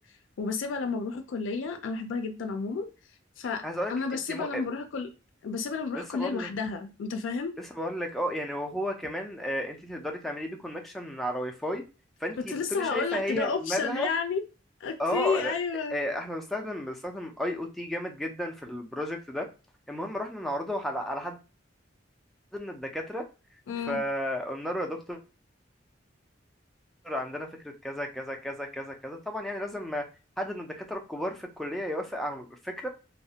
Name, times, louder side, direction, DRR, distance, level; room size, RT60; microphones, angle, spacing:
voice 1, 0.4-2.9 3.4-5.1 5.4-7.5 12.5-14.4 14.8-16.0 23.7-24.0, left 5 dB, 90° left, 0.4 m, -31 dB
voice 2, 4.3-4.6 5.9-6.5 7.6-11.8 12.2-14.1 15.0-15.5 15.9-19.5 19.9-21.4 22.5-23.3 23.9-25.2 27.0-30.1 30.4-32.9, equal, ahead, 0.4 m, -33 dB
2.4 x 2.0 x 2.7 m
head